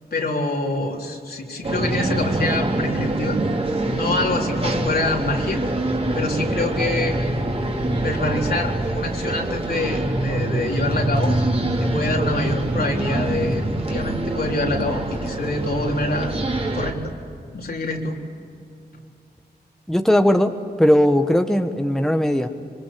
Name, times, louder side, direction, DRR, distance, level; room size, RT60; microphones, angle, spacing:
voice 1, 0.1-3.4 3.9-5.6 6.1-7.2 8.0-11.4 11.8-16.3 16.7-17.1 17.5-18.2, left 2 dB, 65° left, 0 dB, 3.9 m, -25 dB
sound 1, 1.6-16.9, right 2 dB, 35° right, 3.3 m, -24 dB
voice 2, 19.9-20.5 20.8-22.5, equal, 5° left, 6 dB, 1.3 m, -18 dB
25.5 x 24.0 x 8.6 m, 2.5 s
wide cardioid pair, 95°, 17 cm